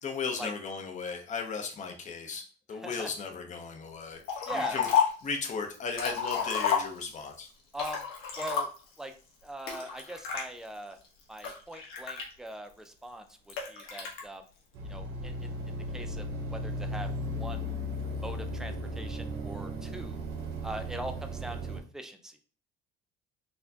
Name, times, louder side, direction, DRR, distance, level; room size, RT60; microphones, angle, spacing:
voice 1, 0.0-2.4 2.7-4.9 5.2-7.5, left 5 dB, 35° left, 3 dB, 0.7 m, -36 dB
voice 2, 2.7-3.1 4.5-4.8 7.7-8.0 8.4-8.7 9.0-9.1 9.4-11.0 11.3-14.5 14.8-17.1 17.4-17.7 18.2-20.2 20.6-22.4, right 1 dB, 5° right, 6 dB, 0.3 m, -41 dB
Liquid, 4.3-5.3 5.7-7.3 7.7-9.0 9.7-10.4 11.0-12.7 13.5-14.2, left 7 dB, 80° left, 1.1 m, -30 dB
sound 1, 14.7-21.8, equal, 70° right, 1.0 m, -36 dB
4.2 x 2.2 x 2.8 m, 0.39 s
cardioid pair, 130°, 21 cm